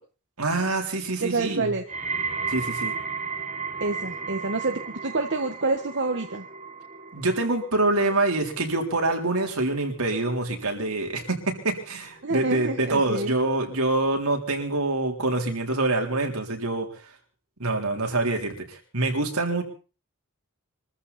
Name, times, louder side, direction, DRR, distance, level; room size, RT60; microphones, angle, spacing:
voice 1, 0.4-1.7 2.5-2.9 7.1-16.9 17.6-19.6, right 2 dB, 75° right, 3 dB, 3.8 m, -25 dB
voice 2, 1.2-1.8 3.8-6.5 12.2-13.4, right 3 dB, 55° right, 4 dB, 1.5 m, -27 dB
sound 1, 1.9-13.0 13.3-13.8 14.6-14.7, right 5 dB, 35° right, 1.4 m, -36 dB
24.0 x 14.0 x 4.2 m, 0.36 s
head